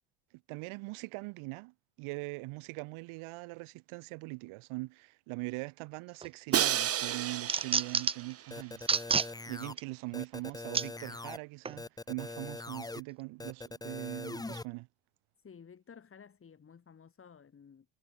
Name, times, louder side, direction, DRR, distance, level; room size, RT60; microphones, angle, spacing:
voice 1, 0.5-8.8 9.5-14.9, right 25 dB, 80° right, 1.4 m, -41 dB
sound 1, 6.2-6.6 7.0-8.3 8.8-9.3 9.8-9.9 10.7-10.9 11.6-11.8, right 5 dB, 10° right, 0.5 m, -29 dB
Crash cymbal, 6.5-8.5, right 10 dB, 30° right, 0.9 m, -32 dB
sound 2, 8.5-9.7 10.1-11.4 11.8-13.0 13.4-14.6, left 2 dB, 10° left, 1.3 m, -42 dB
voice 2, 15.4-17.9, left 6 dB, 25° left, 7.2 m, -54 dB
cardioid pair, 155°, 48 cm